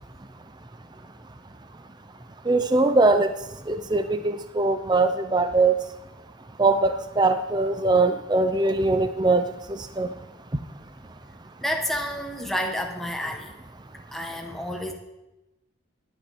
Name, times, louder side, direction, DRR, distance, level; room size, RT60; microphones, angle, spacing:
voice 1, 2.5-3.3 3.7-5.7 6.6-9.4 10.0-10.1, right 3 dB, 20° right, 8 dB, 0.6 m, -21 dB
voice 2, 11.6-13.6 14.1-14.9, equal, ahead, 2 dB, 1.2 m, -30 dB
10.5 x 8.4 x 9.8 m, 1.0 s
head